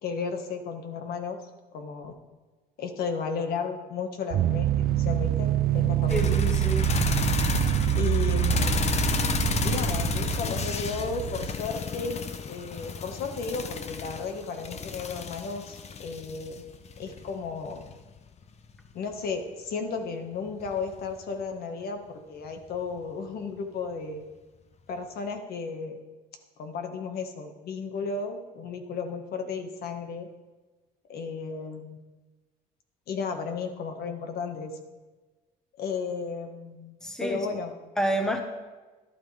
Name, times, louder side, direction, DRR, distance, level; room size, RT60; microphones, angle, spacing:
voice 1, 0.0-1.4 1.7-2.2 2.8-6.3 8.0-9.0 9.6-12.2 12.5-16.6 17.0-17.9 18.9-24.2 24.9-26.0 26.6-30.3 31.1-32.0 33.1-34.7 35.8-37.7, left 5 dB, 65° left, 6 dB, 1.6 m, -34 dB
sound 1, 4.3-11.5, right 12 dB, 60° right, 0.6 m, -26 dB
sound 2, 6.1-19.0 20.6-21.2 22.9-23.0, left 6 dB, 40° left, 0.9 m, -32 dB
voice 2, 6.1-6.9 37.0-37.4 38.0-38.4, right 1 dB, 5° left, 4 dB, 1.3 m, -28 dB
13.0 x 12.0 x 3.5 m, 1.2 s
cardioid pair, 110°, 17 cm